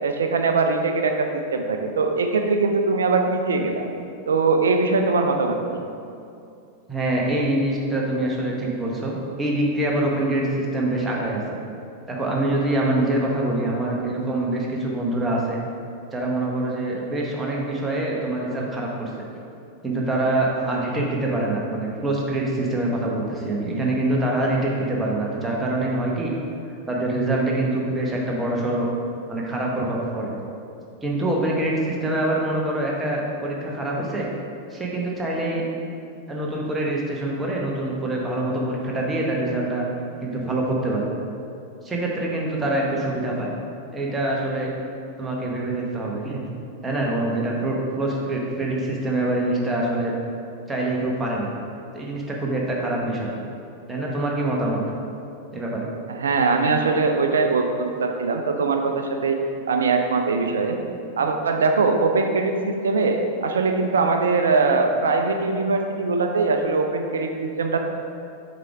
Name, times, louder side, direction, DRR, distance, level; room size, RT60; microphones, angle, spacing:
voice 1, 0.0-3.9 4.3-5.8 56.1-59.4 59.7-60.8 61.2-67.8, right 4 dB, 65° right, 4 dB, 0.5 m, -22 dB
voice 2, 6.9-11.4 12.1-15.6 16.1-19.1 19.8-26.3 26.9-28.9 29.3-30.3 31.0-34.3 34.7-35.7 36.3-39.8 40.2-41.0 41.8-43.5 43.9-44.7 45.2-46.4 46.8-50.1 50.7-51.5 51.9-53.3 53.9-54.8 55.5-55.9, right 1 dB, 15° right, -3 dB, 1.2 m, -25 dB
7.4 x 5.0 x 3.5 m, 2.5 s
figure-of-eight pair, 90°, 0 cm